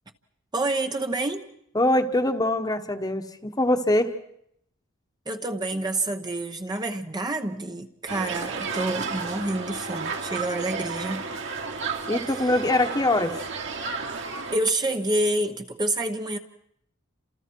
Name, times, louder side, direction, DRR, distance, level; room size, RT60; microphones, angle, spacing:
voice 1, 0.5-1.5 5.3-11.2 12.3-12.5 14.5-16.4, right 2 dB, 20° right, 5 dB, 1.0 m, -28 dB
voice 2, 1.7-4.1 12.1-13.4, left 1 dB, 20° left, 7 dB, 1.3 m, -23 dB
sound 1, 8.1-14.6, right 4 dB, 65° right, 2.9 m, -32 dB
30.0 x 27.5 x 4.7 m, 0.73 s
head